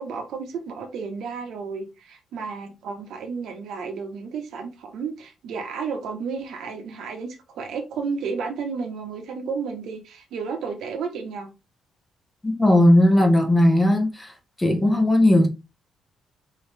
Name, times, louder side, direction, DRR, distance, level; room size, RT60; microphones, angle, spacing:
voice 1, 0.0-11.5, right 5 dB, 75° right, 1.3 m, -32 dB
voice 2, 12.4-14.3 14.6-15.5, left 1 dB, 15° left, 1.2 m, -17 dB
4.7 x 3.2 x 3.4 m
cardioid pair, 90°, 0 cm